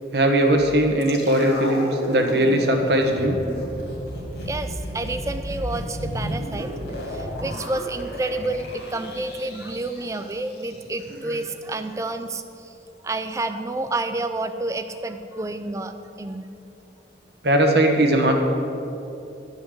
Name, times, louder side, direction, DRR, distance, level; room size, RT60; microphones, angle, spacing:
voice 1, 0.1-3.4 11.2-11.4 17.4-18.3, right 1 dB, 70° right, 3 dB, 1.2 m, -19 dB
sound 1, 1.0-11.1 11.4-11.5, equal, 70° left, 2.2 m, -33 dB
voice 2, 4.5-12.7 13.0-16.5, right 2 dB, 20° right, 8 dB, 0.3 m, -29 dB
11.5 x 5.6 x 7.9 m, 2.9 s
head